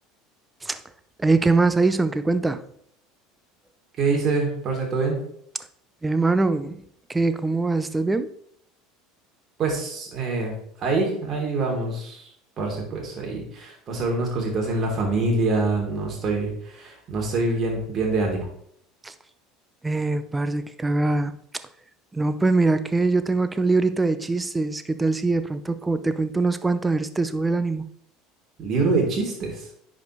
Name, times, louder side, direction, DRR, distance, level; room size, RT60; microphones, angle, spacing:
voice 1, 1.2-2.6 6.0-6.8 7.1-8.3 19.0-19.1 19.8-21.3 22.1-27.8, right 3 dB, 15° right, 0.6 m, -23 dB
voice 2, 4.0-5.2 9.6-12.2 12.6-18.5 28.6-29.6, right 3 dB, 40° right, 3.0 m, -25 dB
10.5 x 5.2 x 3.2 m
figure-of-eight pair, 70°, 0 cm